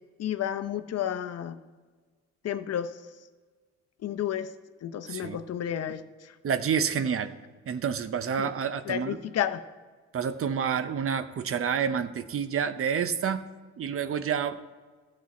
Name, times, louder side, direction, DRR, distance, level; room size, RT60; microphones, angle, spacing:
voice 1, 0.2-1.6 2.4-2.9 4.0-4.5 4.8-6.0 8.4-8.5 8.8-9.6, left 10 dB, 55° left, 10 dB, 0.7 m, -31 dB
voice 2, 5.1-5.4 6.4-7.3 7.7-9.2 10.1-13.4 13.8-14.6, right 7 dB, 45° right, 12 dB, 0.7 m, -28 dB
13.0 x 7.6 x 4.2 m, 1.4 s
cardioid pair, 90°, 30 cm